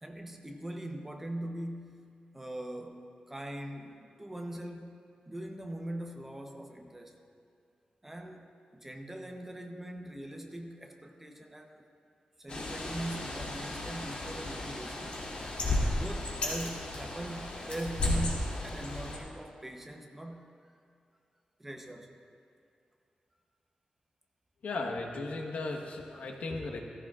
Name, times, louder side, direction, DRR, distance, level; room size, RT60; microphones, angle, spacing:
voice 1, 0.0-5.0 5.3-7.2 8.0-11.9 12.4-15.1 15.9-20.4 21.6-22.1, right 1 dB, 10° right, 2 dB, 0.9 m, -41 dB
Bird, 12.5-19.2, left 2 dB, 55° left, 2.6 m, -34 dB
voice 2, 24.6-26.8, left 3 dB, 85° left, 1 dB, 1.2 m, -36 dB
16.5 x 14.5 x 2.5 m, 2.6 s
wide cardioid pair, 160°, 2 cm